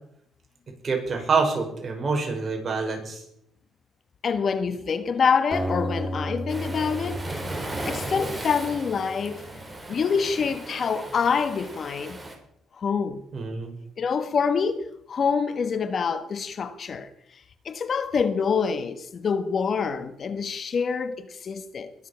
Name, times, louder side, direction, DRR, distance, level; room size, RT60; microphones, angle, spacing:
voice 1, 0.8-3.2 13.3-13.7, right 4 dB, 40° right, 5.5 m, -26 dB
voice 2, 4.2-9.5 9.9-12.2 12.8-13.2 14.0-17.1 17.6-21.9, left 6 dB, 50° left, 1.3 m, -26 dB
Acoustic guitar, 5.5-9.1, equal, 10° left, 3.6 m, -33 dB
Waves surf, 6.5-12.4, right 1 dB, 15° right, 4.1 m, -36 dB
21.5 x 7.4 x 7.0 m
cardioid pair, 90°, 0 cm